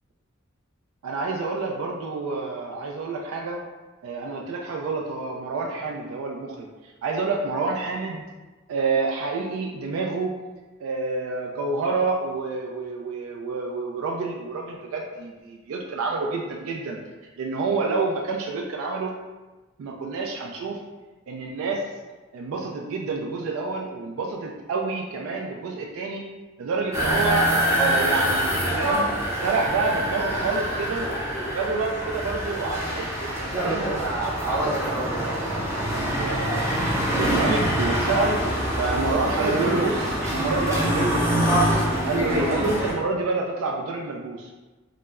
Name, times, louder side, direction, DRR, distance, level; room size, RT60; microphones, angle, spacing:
voice 1, 1.0-3.6 4.0-8.2 8.7-10.3 10.8-17.0 17.4-19.1 19.8-20.8 21.3-21.8 22.3-26.3 26.6-29.0 29.3-31.1 31.4-41.6 42.0-44.5, right 3 dB, 85° right, 0 dB, 0.3 m, -28 dB
sound 1, 26.9-42.9, equal, 15° right, 0.5 m, -25 dB
2.1 x 2.1 x 3.4 m, 1.2 s
head